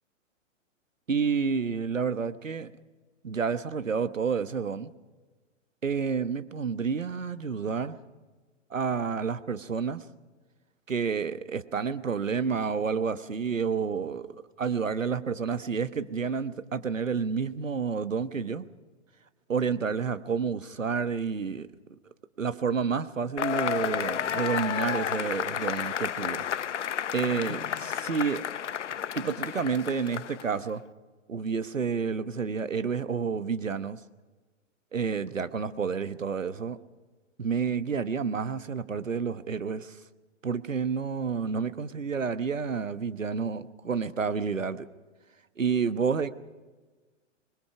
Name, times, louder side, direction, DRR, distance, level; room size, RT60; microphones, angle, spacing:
voice 1, 1.1-2.7 3.2-4.9 5.8-8.0 8.7-10.0 10.9-18.6 19.5-21.7 22.4-26.4 27.1-28.4 29.1-30.8 31.3-34.0 34.9-36.8 37.4-40.0 40.4-44.9 45.6-46.3, right 6 dB, 80° right, 1.2 m, -29 dB
Cheering / Applause / Crowd, 23.4-30.6, left 9 dB, 65° left, 0.7 m, -31 dB
25.0 x 21.5 x 5.9 m
figure-of-eight pair, 110°, 38 cm